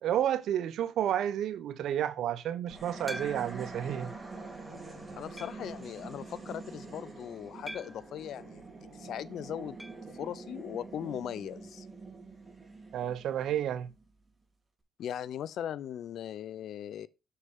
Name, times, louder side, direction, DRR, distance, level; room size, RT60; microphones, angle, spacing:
voice 1, 0.0-4.1 12.9-13.9, right 10 dB, 75° right, 0.7 m, -31 dB
sound 1, 2.7-14.0, right 3 dB, 20° right, 2.9 m, -45 dB
sound 2, 3.1-3.8 4.4-4.5 5.4-5.8 7.7-8.1 9.8-10.1 10.4-10.5 10.7-10.8 12.8-12.9, equal, ahead, 0.4 m, -44 dB
voice 2, 5.1-8.6 8.9-9.8 10.1-11.9 15.0-17.1, left 10 dB, 70° left, 0.5 m, -39 dB
6.7 x 6.6 x 3.6 m
cardioid pair, 90°, 0 cm